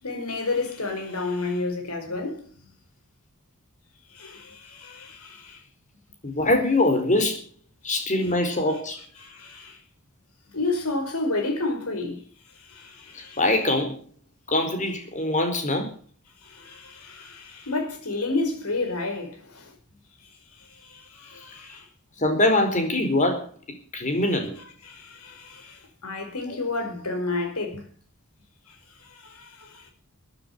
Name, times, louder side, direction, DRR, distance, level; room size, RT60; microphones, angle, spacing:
voice 1, 0.0-2.4 4.1-5.6 9.2-9.8 10.5-12.3 12.6-13.4 16.4-19.7 20.7-21.8 24.8-27.9 28.7-28.8 29.1-29.9, left 3 dB, 85° left, 5.1 m, -31 dB
voice 2, 6.2-7.4 7.8-9.0 13.1-14.0 14.5-15.9 22.2-23.5 23.9-24.5 26.5-26.6, left 2 dB, 35° left, 4.4 m, -23 dB
14.5 x 10.0 x 8.0 m
head